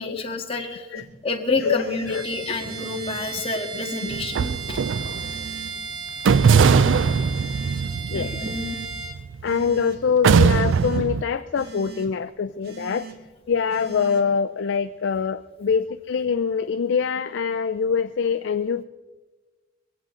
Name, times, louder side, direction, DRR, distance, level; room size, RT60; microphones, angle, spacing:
voice 1, 0.0-0.9 1.2-4.8 6.7-7.1 8.1-8.8, left 3 dB, 30° left, 1 dB, 1.7 m, -29 dB
sound 1, 0.9-1.0 1.6-2.1 2.6-3.2 3.7-4.3 5.2-5.7 6.3-6.8 7.3-7.8 8.4-8.9 9.4-10.0 10.5-11.0 11.5-12.1 12.6-13.1 13.7-14.2, right 5 dB, 55° right, 2.0 m, -39 dB
voice 2, 1.6-2.3 8.1-8.3 9.4-13.1 13.5-18.8, left 6 dB, 65° left, 11 dB, 0.4 m, -24 dB
Bowed string instrument, 2.0-9.2, right 4 dB, 25° right, 1.4 m, -35 dB
sound 2, 4.1-5.5 6.2-9.7 10.2-11.2, right 6 dB, 75° right, 0.4 m, -20 dB
21.5 x 16.0 x 3.8 m, 1.3 s
head